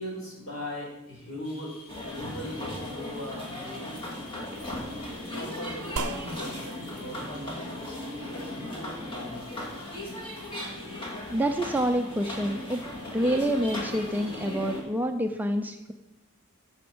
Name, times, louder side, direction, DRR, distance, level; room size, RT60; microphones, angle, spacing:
voice 1, 0.0-1.7 2.0-4.0 5.1-9.7, left 1 dB, 65° left, -3 dB, 4.7 m, -40 dB
sound 1, 1.4-14.4, left 2 dB, 85° left, 3.7 m, -52 dB
sound 2, 1.9-14.8, left 1 dB, 20° left, 2.2 m, -37 dB
sound 3, 6.0-14.7, right 4 dB, 75° right, 0.6 m, -44 dB
voice 2, 11.3-12.8 13.1-15.9, right 1 dB, 10° right, 5 dB, 0.5 m, -27 dB
9.4 x 7.1 x 6.1 m, 0.91 s
head